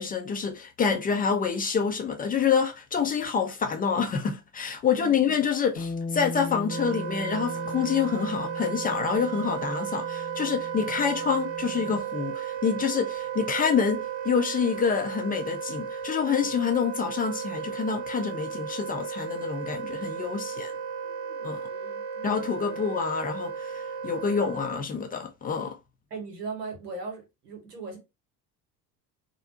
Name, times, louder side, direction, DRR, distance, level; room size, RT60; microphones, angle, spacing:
voice 1, 0.0-20.7 21.4-21.7 22.2-25.8, left 6 dB, 20° left, 0.3 m, -27 dB
voice 2, 4.9-5.4 20.1-20.6 21.0-22.8 26.1-28.0, right 4 dB, 90° right, 0.9 m, -41 dB
Bass guitar, 5.8-12.0, left 3 dB, 50° left, 0.6 m, -38 dB
Wind instrument woodwind instrument, 6.7-24.9, right 8 dB, 60° right, 0.8 m, -35 dB
2.4 x 2.0 x 2.5 m
figure-of-eight pair, 60°, 46 cm